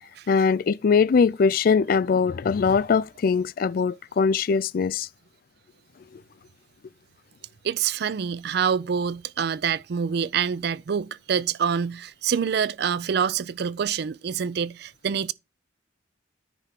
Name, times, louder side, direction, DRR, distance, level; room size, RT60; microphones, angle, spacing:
voice 1, 0.3-5.1, left 5 dB, 50° left, 0.3 m, -21 dB
voice 2, 7.6-15.3, right 7 dB, 60° right, 0.4 m, -26 dB
10.0 x 3.5 x 5.8 m
head